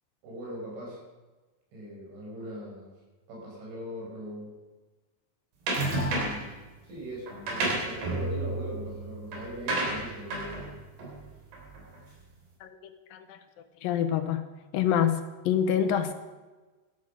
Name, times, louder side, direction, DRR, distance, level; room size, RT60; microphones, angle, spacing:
voice 1, 0.2-1.0 1.7-2.9 3.3-4.5 6.1-10.7, equal, 90° right, -2 dB, 7.6 m, -40 dB
sound 1, 5.7-6.5 7.3-12.0, right 2 dB, 65° right, 5.4 m, -31 dB
voice 2, 12.6-13.4 13.8-14.4 14.7-16.1, left 9 dB, 80° left, 8 dB, 2.1 m, -27 dB
14.0 x 13.0 x 6.6 m, 1.2 s
omnidirectional pair, 5.1 m